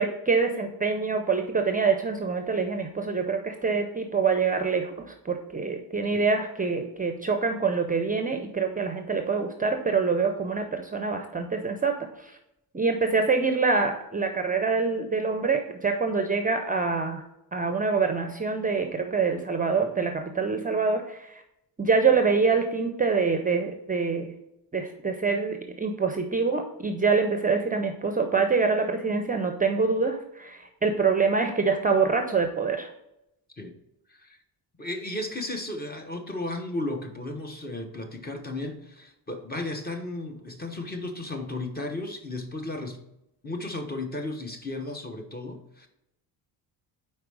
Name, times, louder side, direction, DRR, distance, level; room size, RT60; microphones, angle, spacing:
voice 1, 0.0-12.4 12.7-17.2 17.5-21.4 21.8-24.3 24.7-32.9, right 4 dB, 20° right, 5 dB, 0.5 m, -25 dB
voice 2, 34.8-43.0 43.4-45.9, left 2 dB, 25° left, 5 dB, 0.9 m, -34 dB
5.0 x 4.3 x 4.7 m, 0.84 s
cardioid pair, 110°, 41 cm